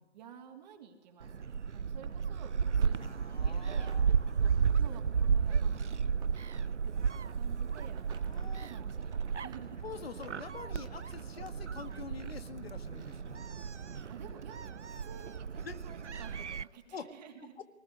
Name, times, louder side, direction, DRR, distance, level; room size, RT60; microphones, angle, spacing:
voice 1, 0.0-3.9 4.4-9.8 13.7-17.5, right 8 dB, 40° right, 4 dB, 3.1 m, -53 dB
Gull seagull, 1.2-16.6, right 6 dB, 85° right, 0.7 m, -33 dB
sound 1, 2.1-2.2 2.7-4.2 4.6-5.0 5.3-7.4 7.9-8.5 8.8-9.7 10.1-11.5 12.5-12.6 13.0-13.1, right 7 dB, 10° right, 1.8 m, -58 dB
voice 2, 2.9-4.6 8.3-8.7 9.8-13.5 15.6-15.8 16.9-17.1 17.4-17.6, left 6 dB, 60° left, 9 dB, 1.9 m, -46 dB
20.5 x 20.0 x 9.8 m, 1.2 s
figure-of-eight pair, 130°, 34 cm